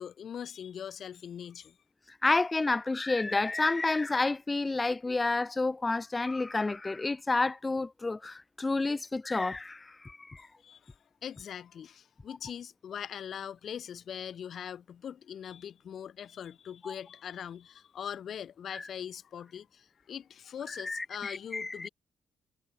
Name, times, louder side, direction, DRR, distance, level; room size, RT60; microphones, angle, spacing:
voice 1, 0.0-1.8 10.6-11.0 11.2-21.9, left 8 dB, 60° left, 3.3 m, -41 dB
voice 2, 2.2-10.4 16.8-16.9 18.7-18.8 20.8-21.9, left 3 dB, 20° left, 0.7 m, -30 dB
cardioid pair, 90°, 0 cm